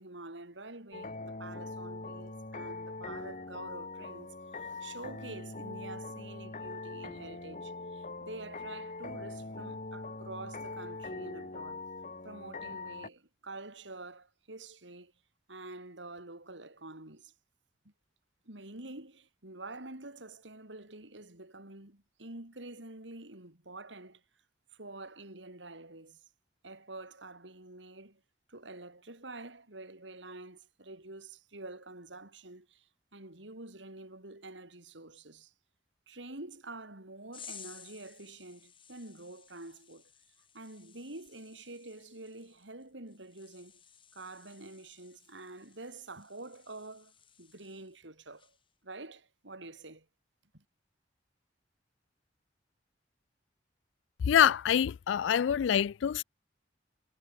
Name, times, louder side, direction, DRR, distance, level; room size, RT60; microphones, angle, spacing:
voice 1, 0.0-11.8 12.2-15.1 15.5-17.3 17.8-17.9 18.4-24.2 24.7-26.2 26.6-28.2 28.5-35.5 36.1-40.1 40.5-43.8 44.1-47.1 47.4-48.6 48.8-50.1 50.5-50.6, right 2 dB, 80° right, 4.4 m, -47 dB
sound 1, 0.9-13.1, left 3 dB, 45° left, 2.7 m, -42 dB
sound 2, 37.3-48.0 48.4-48.7, left 8 dB, 30° left, 2.7 m, -56 dB
voice 2, 54.2-56.2, left 9 dB, 85° left, 0.3 m, -25 dB
head